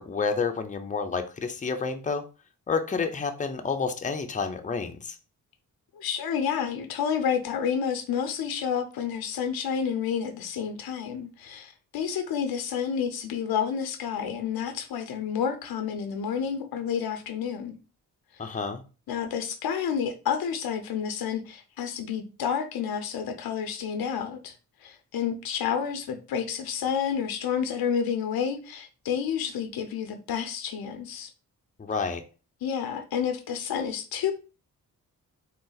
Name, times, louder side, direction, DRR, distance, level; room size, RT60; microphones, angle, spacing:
voice 1, 0.0-2.2 2.7-5.2 18.4-18.8 31.8-32.2, left 5 dB, 20° left, 0.6 m, -29 dB
voice 2, 5.9-17.8 18.4-18.6 19.1-24.5 24.8-31.3 32.6-34.3, left 7 dB, 80° left, 0.7 m, -30 dB
3.9 x 2.1 x 3.9 m
cardioid pair, 55°, 36 cm